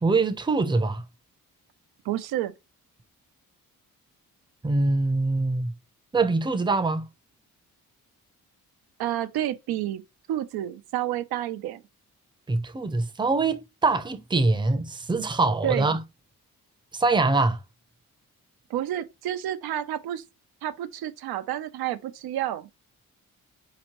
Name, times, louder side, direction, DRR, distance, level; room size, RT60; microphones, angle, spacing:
voice 1, 0.0-1.0 4.6-5.7 6.1-7.0 12.5-16.0 16.9-17.6, right 3 dB, 15° right, 0.6 m, -24 dB
voice 2, 2.0-2.5 9.0-10.0 10.3-11.8 15.6-15.9 18.7-20.2 20.6-22.7, right 12 dB, 85° right, 0.5 m, -30 dB
4.2 x 2.9 x 2.9 m
cardioid pair, 75°, 36 cm